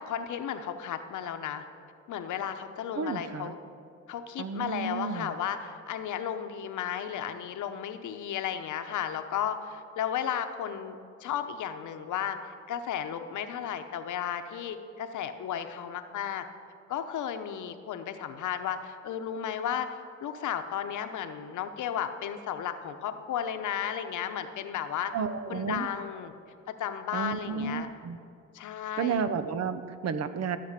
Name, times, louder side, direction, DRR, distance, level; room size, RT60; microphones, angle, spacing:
voice 1, 0.0-1.6 2.1-3.6 4.1-16.4 16.9-25.1 25.5-26.3 26.7-27.9 28.5-29.2, left 9 dB, 80° left, 8 dB, 0.9 m, -34 dB
voice 2, 2.9-3.5 4.4-5.3 25.1-25.9 27.1-28.2 29.0-30.6, right 6 dB, 60° right, 12 dB, 0.8 m, -32 dB
14.0 x 6.9 x 7.5 m, 2.5 s
cardioid pair, 85°, 30 cm